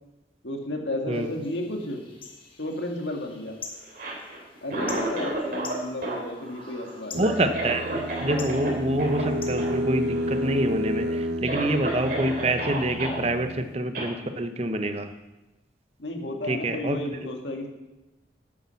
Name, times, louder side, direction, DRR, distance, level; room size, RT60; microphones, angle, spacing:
voice 1, 0.4-2.0 2.6-3.6 4.6-7.2 16.0-17.7, left 1 dB, 90° left, 2 dB, 2.0 m, -32 dB
sound 1, 1.1-10.5, left 4 dB, 30° left, 1.5 m, -46 dB
Cough, 3.8-5.8 6.0-8.7 9.0-9.2 9.6-9.7 10.0-10.6 11.0-11.1 11.4-13.2 13.9-14.1, right 1 dB, 55° right, 3.2 m, -32 dB
sound 2, 7.1-13.7, equal, 75° right, 0.6 m, -31 dB
voice 2, 7.2-15.1 16.5-17.0, right 1 dB, 35° right, 8 dB, 0.9 m, -26 dB
10.5 x 8.5 x 7.0 m, 1.0 s
head